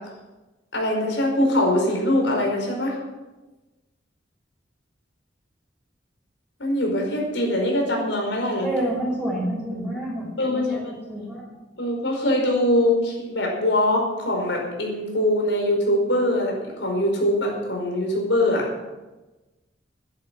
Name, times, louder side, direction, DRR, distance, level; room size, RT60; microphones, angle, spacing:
voice 1, 0.7-3.0 6.6-8.7 10.4-10.8 11.8-18.6, left 1 dB, 85° left, 1 dB, 5.1 m, -22 dB
voice 2, 8.6-10.8 11.1-11.4, right 1 dB, 5° right, -7 dB, 4.7 m, -28 dB
13.0 x 11.0 x 6.3 m, 1.1 s
head